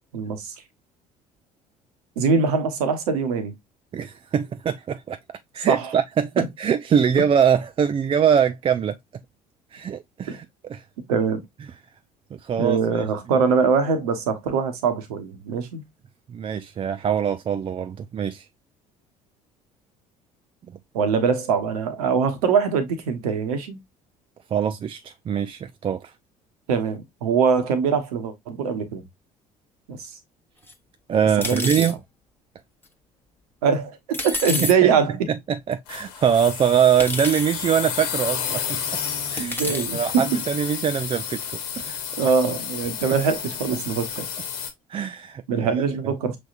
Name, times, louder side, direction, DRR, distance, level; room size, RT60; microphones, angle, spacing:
voice 1, 0.1-0.5 2.2-3.5 5.7-5.9 6.4-6.5 10.3-10.4 11.1-11.4 12.6-15.8 20.9-23.8 26.7-29.0 29.9-30.1 31.4-31.8 33.6-35.3 39.4-40.4 42.2-44.2 45.5-46.4, right 6 dB, 70° right, 1.0 m, -23 dB
voice 2, 3.9-5.2 5.5-9.0 9.7-10.8 12.3-13.1 13.3-13.4 16.3-18.5 20.7-20.8 24.5-26.1 31.1-32.0 34.3-34.9 35.5-38.8 39.3-42.3 44.9-45.7, right 8 dB, 25° right, 0.4 m, -23 dB
sound 1, 30.7-30.8 31.4-31.9 34.1-34.7 35.7-35.8 37.0-37.5 38.3-38.4 39.4-39.9, left 2 dB, 10° left, 1.0 m, -29 dB
sound 2, 35.9-44.7, left 8 dB, 65° left, 1.3 m, -31 dB
6.1 x 3.3 x 2.4 m
figure-of-eight pair, 55°, 20 cm